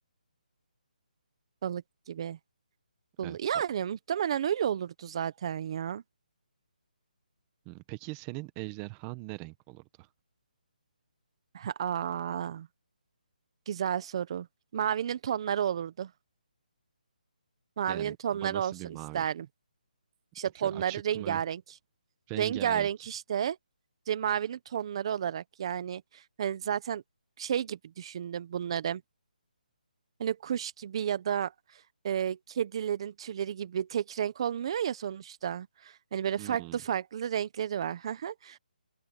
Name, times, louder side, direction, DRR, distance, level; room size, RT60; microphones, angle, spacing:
voice 1, 1.6-2.4 3.2-6.0 11.5-12.7 13.7-14.5 14.7-16.1 17.8-19.5 20.3-21.6 22.3-23.6 24.1-27.0 27.4-29.0 30.2-31.5 32.0-38.6, right 9 dB, 35° right, 1.1 m, -32 dB
voice 2, 7.6-10.1 17.9-19.3 20.6-21.4 22.3-23.1 36.4-36.8, right 23 dB, 15° right, 1.0 m, -41 dB
open air
hypercardioid pair, 165°, 5 cm